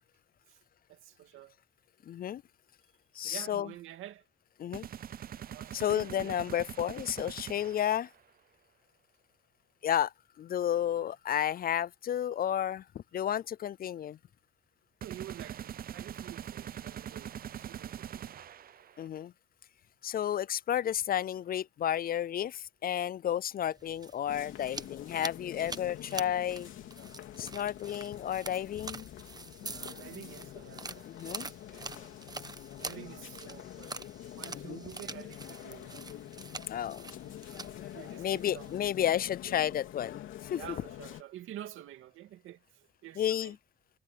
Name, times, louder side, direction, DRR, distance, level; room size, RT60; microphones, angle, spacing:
voice 1, 0.9-1.6 3.2-4.2 5.5-6.5 11.0-11.1 15.0-18.7 29.3-32.2 32.8-34.0 34.2-36.2 37.3-37.4 37.9-39.1 39.5-39.8 40.5-43.6, right 12 dB, 85° right, 2.5 m, -49 dB
voice 2, 2.1-2.4 3.1-3.7 4.6-4.9 5.7-8.1 9.8-14.2 19.0-19.3 20.0-26.7 27.4-29.1 31.1-31.5 34.5-34.8 36.7-37.0 38.2-40.2 40.5-40.6 43.2-43.5, left 10 dB, 50° left, 0.4 m, -32 dB
sound 1, 4.7-8.1 15.0-19.1, right 9 dB, 50° right, 0.6 m, -43 dB
sound 2, 23.7-38.9, right 3 dB, 20° right, 1.1 m, -46 dB
sound 3, 24.3-41.2, left 12 dB, 85° left, 3.3 m, -46 dB
cardioid pair, 90°, 20 cm